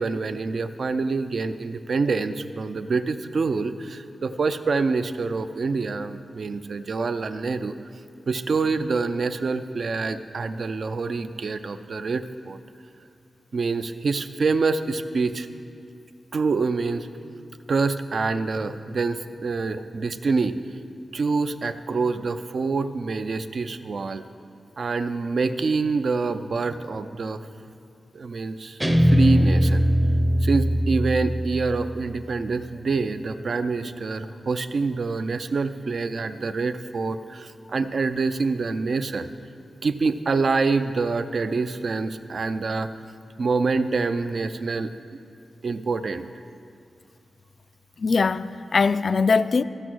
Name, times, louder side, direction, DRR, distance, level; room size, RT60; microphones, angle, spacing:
voice 1, 0.0-7.8 8.3-12.6 13.5-15.5 16.3-17.1 17.7-20.5 21.1-24.2 24.8-27.4 28.1-29.8 30.4-39.3 39.8-42.9 43.4-44.9 45.6-46.3, right 4 dB, 50° right, 0.4 m, -26 dB
Guitar, 28.8-32.0, equal, 10° right, 0.6 m, -21 dB
voice 2, 48.0-49.6, left 4 dB, 45° left, 0.3 m, -21 dB
15.0 x 6.2 x 6.2 m
wide cardioid pair, 150°, 0 cm